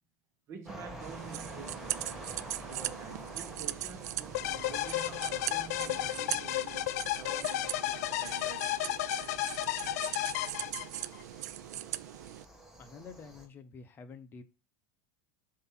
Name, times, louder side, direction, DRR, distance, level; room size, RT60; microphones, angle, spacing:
voice 1, 0.5-2.2 2.7-8.8, right 6 dB, 35° right, 1.3 m, -48 dB
sound 1, 0.7-13.5, right 1 dB, 5° right, 1.2 m, -49 dB
sound 2, 1.0-12.4, right 14 dB, 85° right, 0.4 m, -40 dB
sound 3, 4.3-11.2, left 14 dB, 75° left, 0.5 m, -33 dB
voice 2, 12.4-14.4, left 5 dB, 25° left, 0.8 m, -49 dB
7.6 x 2.8 x 5.8 m
supercardioid pair, 155°, 9 cm